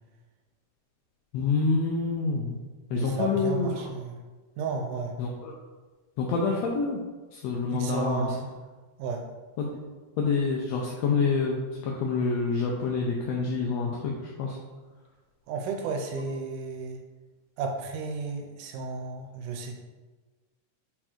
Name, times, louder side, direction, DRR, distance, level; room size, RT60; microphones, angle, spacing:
voice 1, 1.3-2.6 2.9-3.7 5.2-5.5 6.2-7.0 7.3-8.4 9.6-9.8 10.2-14.6, left 4 dB, 75° left, -2 dB, 1.6 m, -27 dB
voice 2, 2.9-4.2 4.6-5.2 7.7-8.5 9.0-9.2 15.5-17.0 17.6-19.7, right 4 dB, 85° right, 3 dB, 2.3 m, -33 dB
5.3 x 4.4 x 4.4 m, 1.3 s
omnidirectional pair, 3.6 m